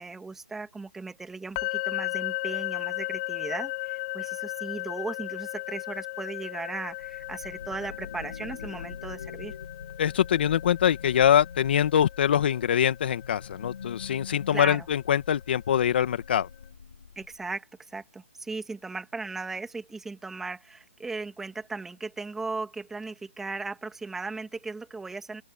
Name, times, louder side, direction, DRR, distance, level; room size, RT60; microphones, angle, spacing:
voice 1, 0.0-9.6 14.5-14.9 17.2-25.4, right 3 dB, 5° right, 2.1 m, -37 dB
sound 1, 1.6-15.4, left 21 dB, 30° left, 3.3 m, -36 dB
sound 2, 6.9-17.5, left 6 dB, 75° left, 2.9 m, -44 dB
voice 2, 10.0-16.5, left 9 dB, 50° left, 1.9 m, -24 dB
open air
hypercardioid pair, 155°, 7 cm